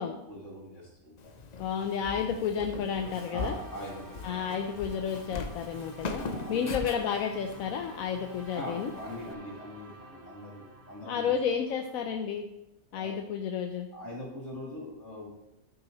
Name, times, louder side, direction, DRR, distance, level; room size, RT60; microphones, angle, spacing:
voice 1, 0.3-1.3 3.3-4.4 6.2-6.8 8.5-11.3 12.9-13.2 13.9-15.3, left 1 dB, 60° left, -3 dB, 2.9 m, -42 dB
Walk footsteps, 1.2-9.3, left 3 dB, 45° left, 0.6 m, -41 dB
voice 2, 1.6-3.5 4.2-6.2 6.5-8.9 11.0-12.4 12.9-13.9, left 7 dB, 85° left, 4 dB, 1.1 m, -31 dB
sound 1, 2.9-12.2, right 1 dB, 85° right, 2.1 m, -51 dB
13.5 x 6.5 x 3.0 m, 0.89 s
omnidirectional pair, 1.4 m